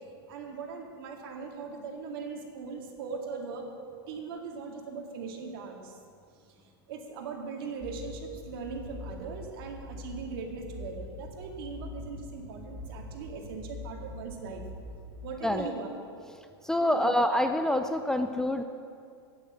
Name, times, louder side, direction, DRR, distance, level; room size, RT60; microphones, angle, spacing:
voice 1, 0.3-3.7 4.1-6.0 6.5-6.6 6.9-14.6 15.2-15.9 16.9-17.1, right 5 dB, 60° right, 1 dB, 2.2 m, -40 dB
sound 1, 7.8-15.2, left 2 dB, 35° right, 2.3 m, -43 dB
voice 2, 16.6-18.6, left 1 dB, 5° left, 7 dB, 0.4 m, -26 dB
8.9 x 8.5 x 8.5 m, 2.3 s
hypercardioid pair, 130°, 14 cm